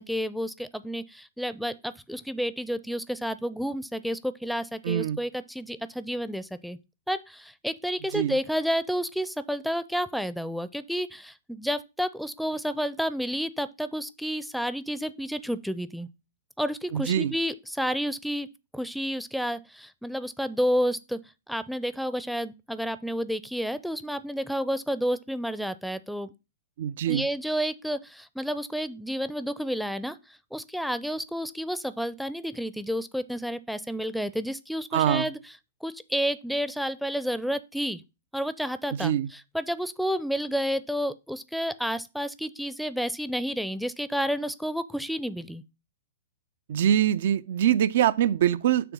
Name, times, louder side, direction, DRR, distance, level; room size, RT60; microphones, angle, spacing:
voice 1, 0.0-6.8 7.1-16.1 16.6-18.5 18.7-21.2 21.5-26.3 27.1-35.4 35.8-38.0 38.3-45.6, equal, ahead, 0.6 m, -30 dB
voice 2, 4.8-5.2 8.1-8.3 16.9-17.3 26.8-27.3 34.9-35.3 39.0-39.3 46.7-48.9, right 10 dB, 60° right, 0.5 m, -24 dB
6.8 x 3.4 x 6.2 m
hypercardioid pair, 110°, 0 cm